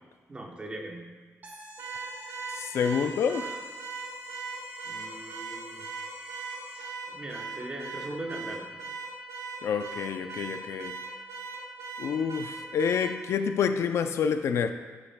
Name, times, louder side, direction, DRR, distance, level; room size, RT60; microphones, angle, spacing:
voice 1, 0.3-1.1 4.8-5.9 7.1-8.7, right 1 dB, 25° right, 1 dB, 1.0 m, -39 dB
sound 1, 1.4-7.0, right 1 dB, 40° right, 1.4 m, -49 dB
Car / Alarm, 1.8-13.2, right 4 dB, 70° right, 1.1 m, -39 dB
voice 2, 2.5-3.6 9.6-11.0 12.0-14.7, left 7 dB, 65° left, 9 dB, 0.4 m, -28 dB
13.5 x 8.5 x 2.2 m, 1.4 s
wide cardioid pair, 165°, 5 cm